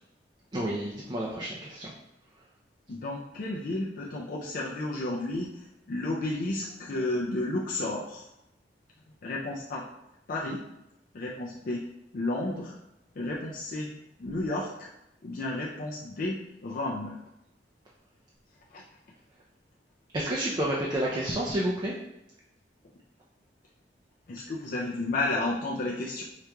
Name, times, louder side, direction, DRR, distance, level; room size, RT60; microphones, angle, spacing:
voice 1, 0.5-1.9 20.1-21.9, right 1 dB, 25° right, -4 dB, 0.4 m, -30 dB
voice 2, 2.9-8.3 9.2-9.8 10.3-10.6 11.1-11.8 12.1-12.7 13.2-13.9 14.2-14.9 15.2-17.2 18.7-18.8 24.3-26.2, left 2 dB, 50° left, -3 dB, 0.4 m, -32 dB
4.8 x 2.9 x 2.2 m, 0.87 s
head